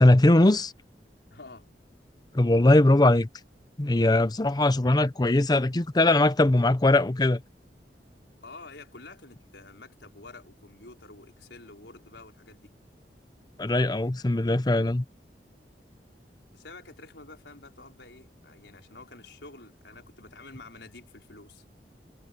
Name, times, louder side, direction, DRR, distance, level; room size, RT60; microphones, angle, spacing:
voice 1, 0.0-0.7 2.3-3.3 3.8-7.4 13.6-15.0, left 2 dB, 25° left, 0.6 m, -20 dB
voice 2, 1.3-1.7 8.4-12.7 16.5-21.6, left 3 dB, 90° left, 4.9 m, -48 dB
head